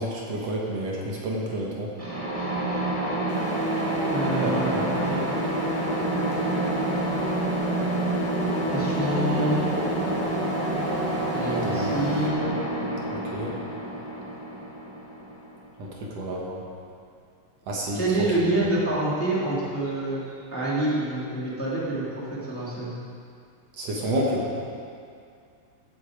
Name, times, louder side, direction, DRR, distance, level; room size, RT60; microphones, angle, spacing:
voice 1, 0.0-1.9 4.4-4.9 11.6-11.9 13.3-13.6 15.8-16.6 17.7-18.0 23.8-24.5, right 1 dB, 60° right, -3 dB, 2.3 m, -29 dB
sound 1, 2.0-15.7, right 2 dB, 15° right, 1.7 m, -27 dB
sound 2, 3.3-12.3, left 8 dB, 50° left, 1.4 m, -36 dB
voice 2, 4.1-5.2 8.7-9.7 11.3-12.6 17.9-20.2 20.5-22.0 22.5-22.9, right 1 dB, 5° left, -7 dB, 1.8 m, -27 dB
15.5 x 8.1 x 4.9 m, 2.4 s
omnidirectional pair, 3.4 m